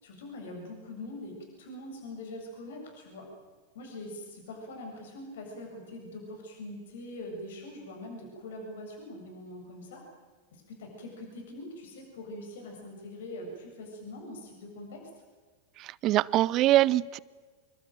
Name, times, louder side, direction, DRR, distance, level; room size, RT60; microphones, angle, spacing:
voice 1, 0.0-3.3 3.7-10.0 10.5-15.0, left 1 dB, 60° left, 2 dB, 7.5 m, -43 dB
voice 2, 15.8-17.2, right 15 dB, 35° right, 22 dB, 0.8 m, -24 dB
28.5 x 22.0 x 9.2 m, 1.4 s
figure-of-eight pair, 90°, 0 cm